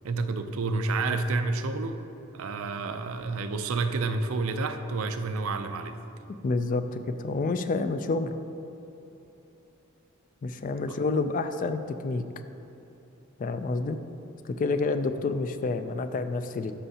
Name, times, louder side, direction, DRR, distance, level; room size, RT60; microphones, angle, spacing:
voice 1, 0.0-2.0 2.3-6.0, right 3 dB, 70° right, 8 dB, 0.5 m, -29 dB
voice 2, 6.4-8.4 10.4-12.2 13.4-14.0 14.4-16.7, left 3 dB, 40° left, 10 dB, 0.3 m, -28 dB
13.0 x 5.5 x 2.8 m, 3.0 s
head